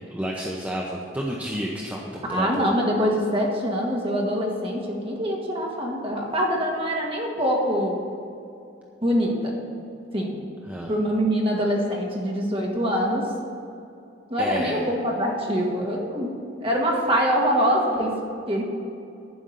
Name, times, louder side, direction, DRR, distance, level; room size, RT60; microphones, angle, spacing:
voice 1, 0.1-2.7 10.7-10.9 14.4-14.9, equal, 10° right, -2 dB, 0.8 m, -30 dB
voice 2, 2.3-8.0 9.0-9.5 10.1-10.3 10.9-13.3 14.3-16.3 16.6-18.2 18.5-18.6, equal, 30° right, -1 dB, 1.8 m, -24 dB
11.5 x 5.3 x 8.7 m, 2.6 s
head